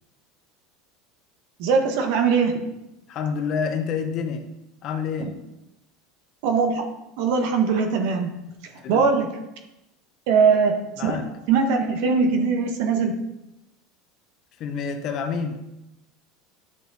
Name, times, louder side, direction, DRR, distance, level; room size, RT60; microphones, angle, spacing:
voice 1, 1.6-2.6 5.2-5.3 6.4-6.8 7.2-8.3 8.9-9.4 10.3-11.2 11.5-13.2, right 5 dB, 65° right, 5 dB, 1.4 m, -21 dB
voice 2, 3.1-4.5 4.8-5.4 8.8-9.1 11.0-11.4 14.6-15.7, left 6 dB, 40° left, 6 dB, 1.0 m, -28 dB
10.5 x 6.3 x 4.1 m, 0.93 s
supercardioid pair, 155°, 0 cm